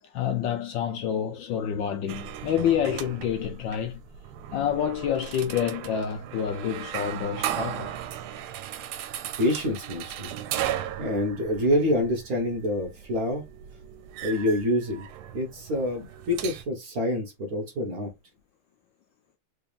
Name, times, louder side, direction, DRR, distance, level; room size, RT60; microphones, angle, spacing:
voice 1, 0.0-4.0 4.5-8.0, left 9 dB, 75° left, 1.1 m, -28 dB
sound 1, 2.1-16.6, right 11 dB, 85° right, 1.5 m, -37 dB
voice 2, 9.4-13.4 14.2-15.1 15.3-18.1, left 1 dB, 50° right, 1.2 m, -27 dB
3.9 x 3.5 x 2.4 m
omnidirectional pair, 2.4 m